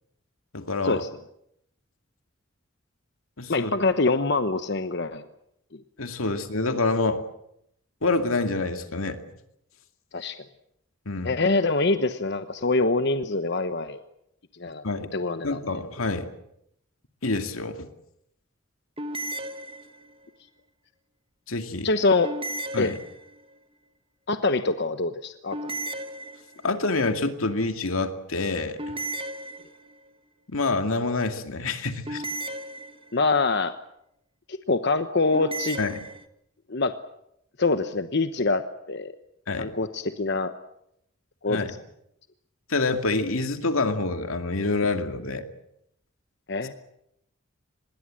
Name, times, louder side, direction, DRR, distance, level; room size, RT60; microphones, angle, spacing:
voice 1, 0.5-1.0 3.4-3.7 6.0-7.2 8.0-9.2 11.1-11.3 14.8-15.1 15.4-16.3 17.2-17.9 21.5-21.9 22.7-23.0 26.6-28.9 30.5-32.2 35.8-35.9 39.5-39.7 41.5-41.7 42.7-45.5, left 3 dB, 85° left, 7 dB, 2.4 m, -27 dB
voice 2, 3.5-5.2 5.7-5.8 10.1-10.4 11.2-14.0 14.6-14.8 15.1-15.6 21.8-22.3 22.8-22.9 24.3-25.7 33.1-33.7 34.5-35.8 36.7-36.9 37.6-39.1 39.6-40.5 41.4-41.8 46.5-46.7, left 3 dB, 55° left, 9 dB, 1.1 m, -25 dB
sound 1, 19.0-20.3 22.2-23.5 25.5-26.8 28.8-30.1 32.1-33.4 35.3-36.3, right 1 dB, 25° right, 1.3 m, -35 dB
25.0 x 21.5 x 7.7 m, 0.77 s
head